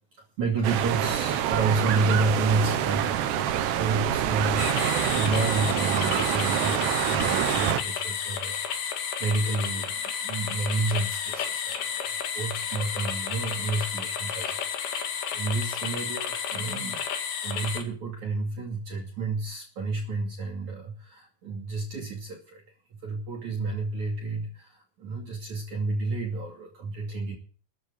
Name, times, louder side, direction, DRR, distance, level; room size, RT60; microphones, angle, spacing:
voice 1, 0.1-17.0 17.4-22.6 22.9-27.4, right 3 dB, 50° right, 0 dB, 3.5 m, -30 dB
sound 1, 0.6-7.8, right 10 dB, 80° right, 3.3 m, -26 dB
sound 2, 4.6-17.8, left 7 dB, 80° left, 4.3 m, -32 dB
14.0 x 10.0 x 8.5 m, 0.40 s
omnidirectional pair, 4.9 m